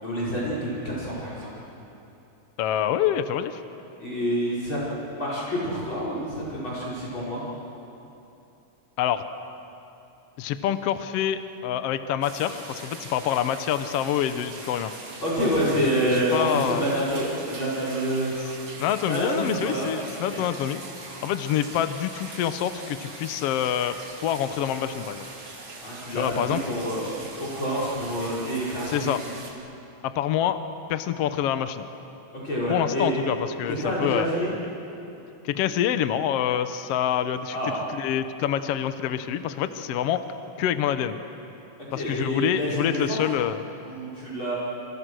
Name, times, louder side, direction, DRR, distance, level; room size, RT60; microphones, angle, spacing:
voice 1, 0.0-1.5 4.0-4.8 5.1-7.4 15.2-18.3 19.1-19.9 20.2-20.4 25.8-27.1 27.4-29.1 32.3-33.2 33.7-34.5 37.5-37.8 41.9-43.2 43.8-44.6, equal, 40° left, -6 dB, 5.8 m, -27 dB
voice 2, 2.6-3.6 9.0-9.2 10.4-14.9 16.3-16.8 18.8-20.8 21.2-25.3 26.1-26.6 28.9-29.2 30.0-30.6 30.9-31.9 32.7-34.3 35.4-37.6 37.9-40.2 40.6-41.2 41.9-43.6, left 10 dB, 70° left, 10 dB, 1.6 m, -26 dB
sound 1, 12.2-29.5, right 3 dB, 45° right, 3.5 m, -41 dB
28.0 x 26.5 x 6.3 m, 2.8 s
omnidirectional pair, 3.6 m